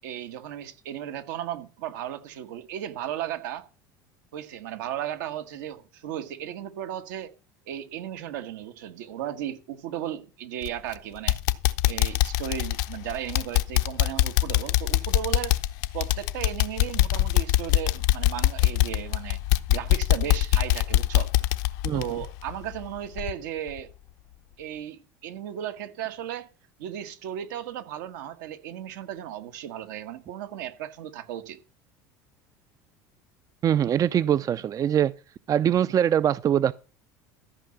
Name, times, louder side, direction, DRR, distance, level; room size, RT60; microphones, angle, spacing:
voice 1, 0.0-3.7 4.3-7.3 7.7-11.4 11.9-15.6 15.9-19.4 19.7-21.3 21.9-23.9 24.6-26.5 26.8-31.6, right 11 dB, 80° right, 1.6 m, -35 dB
sound 1, 10.6-10.9 11.3-22.9 23.2-23.3 23.8-23.9, left 15 dB, 75° left, 0.8 m, -23 dB
voice 2, 33.6-35.1 35.5-36.7, right 9 dB, 35° right, 0.5 m, -22 dB
14.0 x 5.3 x 7.1 m
hypercardioid pair, 85°, 10 cm